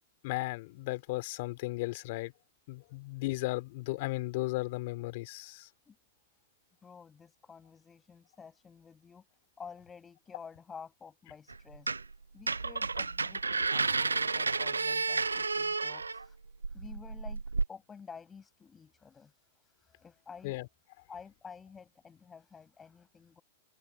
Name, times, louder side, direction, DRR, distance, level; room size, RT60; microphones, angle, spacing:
voice 1, 0.2-2.3 2.7-5.7 20.4-20.7, left 21 dB, 55° left, 2.9 m, -35 dB
voice 2, 6.8-9.2 9.6-12.0 12.3-16.4 16.7-20.6 21.1-23.4, left 6 dB, 20° left, 7.3 m, -51 dB
sound 1, 11.5-12.2 12.4-17.7, right 4 dB, 90° right, 0.4 m, -31 dB
hypercardioid pair, 105°, 0 cm